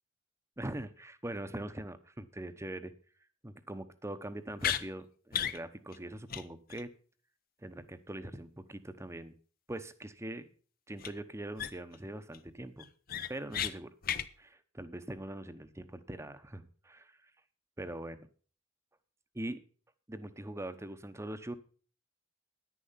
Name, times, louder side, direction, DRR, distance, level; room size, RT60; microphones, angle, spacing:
voice 1, 0.6-2.9 3.4-6.9 7.6-9.3 9.7-10.5 10.9-12.9 13.3-13.9 14.4-17.2 17.8-18.3 19.3-19.6 20.1-21.5, right 1 dB, 15° right, 11 dB, 0.9 m, -42 dB
sound 1, 4.6-4.8 5.3-5.6 5.9-6.0 6.3-6.4 6.7-6.8 11.0-11.1 11.6-12.0 12.3-12.4 12.8-13.7 14.0-14.3, left 9 dB, 50° left, 0.7 m, -33 dB
10.0 x 10.0 x 5.8 m, 0.40 s
head